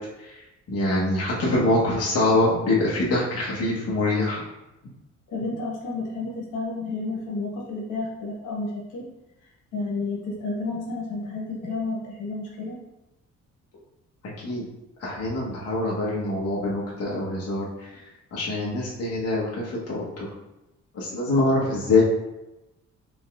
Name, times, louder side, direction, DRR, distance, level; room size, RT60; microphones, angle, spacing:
voice 1, 0.2-4.4 14.4-14.6 15.0-18.0 18.3-20.3 20.9-22.0, left 2 dB, 55° left, -5 dB, 1.1 m, -24 dB
voice 2, 5.3-9.1 9.7-12.8, left 3 dB, 80° left, -4 dB, 1.3 m, -31 dB
4.0 x 3.5 x 2.3 m, 0.95 s
cardioid pair, 90°, 30 cm